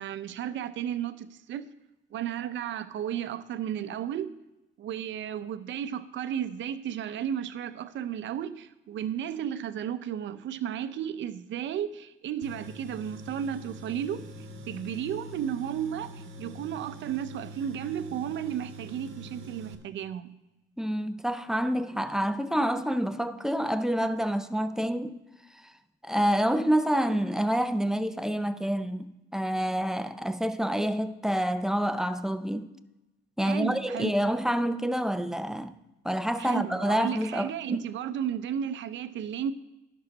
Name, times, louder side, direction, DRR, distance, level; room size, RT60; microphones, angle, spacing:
voice 1, 0.0-1.7 2.1-4.4 4.8-14.3 14.7-20.4 33.4-34.2 36.4-39.5, right 9 dB, 70° right, 0.6 m, -33 dB
Tools, 12.4-19.7, equal, 85° right, 1.0 m, -44 dB
voice 2, 20.8-25.2 26.0-32.7 33.4-35.8 36.0-37.8, equal, 5° right, 0.5 m, -28 dB
11.0 x 6.4 x 5.1 m
cardioid pair, 90°, 20 cm